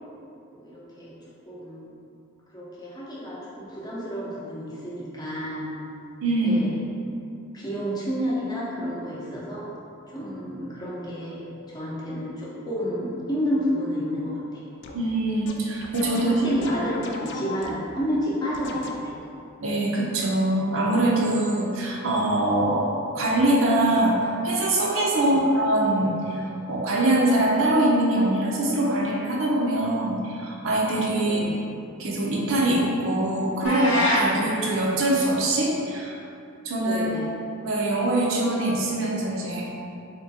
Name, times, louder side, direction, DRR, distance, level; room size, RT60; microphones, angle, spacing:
voice 1, 0.5-1.1 1.5-1.9 2.5-5.7 6.4-6.7 7.5-9.6 10.1-14.6 16.2-19.1 25.2-25.4 31.2-31.6 36.8-37.3, equal, 20° left, -7 dB, 0.6 m, -30 dB
voice 2, 6.2-6.6 14.9-16.3 19.6-22.9 23.1-24.2 24.4-31.5 32.0-36.1 36.6-37.2 37.6-39.7, right 1 dB, 65° right, -3 dB, 0.5 m, -23 dB
sound 1, 14.8-15.1 15.5-18.0 18.5-19.3, left 2 dB, 60° left, 0.3 m, -37 dB
sound 2, 33.6-34.3, left 1 dB, 80° left, 0.8 m, -24 dB
3.6 x 2.9 x 2.7 m, 2.6 s
head